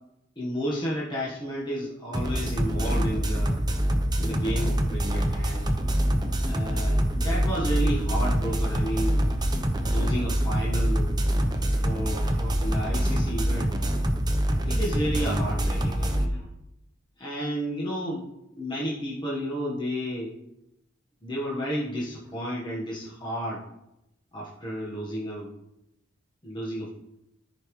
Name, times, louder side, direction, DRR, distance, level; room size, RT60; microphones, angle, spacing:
voice 1, 0.4-3.6 4.2-5.7 6.4-9.3 9.8-11.2 11.7-13.8 14.6-16.4 17.2-18.3 18.6-20.3 21.2-23.6 24.3-25.5 26.4-26.9, equal, 25° left, -6 dB, 1.3 m, -32 dB
sound 1, 2.1-16.3, equal, 20° right, 0.8 m, -25 dB
14.0 x 5.2 x 3.2 m, 0.87 s
head